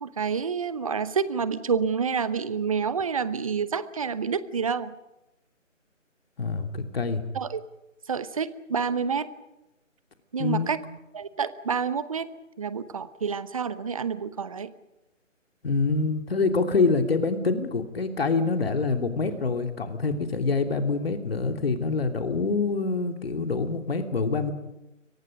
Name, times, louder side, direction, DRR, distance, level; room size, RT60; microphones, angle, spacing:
voice 1, 0.0-4.9 7.3-7.6 8.1-9.3 10.3-10.8 11.1-12.3 12.6-14.7, right 6 dB, 25° right, 15 dB, 0.9 m, -28 dB
voice 2, 6.4-7.2 10.4-10.7 15.6-24.5, left 4 dB, 50° left, 6 dB, 3.0 m, -26 dB
29.5 x 24.0 x 5.3 m, 0.94 s
figure-of-eight pair, 150°, 39 cm